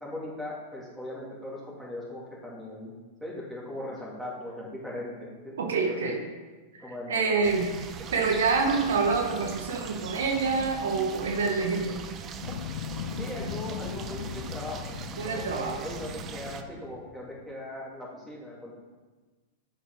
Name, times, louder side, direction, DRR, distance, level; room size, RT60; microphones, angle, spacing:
voice 1, 0.0-2.9 3.2-5.6 5.8-6.2 6.8-7.5 13.1-18.7, left 1 dB, ahead, -6 dB, 2.4 m, -39 dB
voice 2, 5.6-6.2 6.7-7.7 8.1-12.0 15.2-15.8, right 4 dB, 85° right, 3 dB, 1.0 m, -27 dB
sound 1, 7.4-16.6, right 7 dB, 30° right, 0.5 m, -41 dB
sound 2, 12.4-17.4, left 8 dB, 70° left, 0.4 m, -38 dB
7.6 x 4.6 x 4.7 m, 1.3 s
hypercardioid pair, 115°, 0 cm